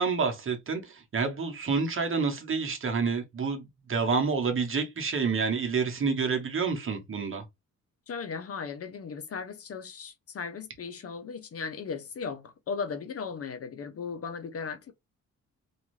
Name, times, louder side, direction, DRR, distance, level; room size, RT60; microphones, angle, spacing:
voice 1, 0.0-7.4, right 5 dB, 40° right, 0.9 m, -28 dB
voice 2, 8.1-14.9, left 5 dB, 45° left, 0.6 m, -37 dB
2.5 x 2.4 x 3.0 m
cardioid pair, 75°, 32 cm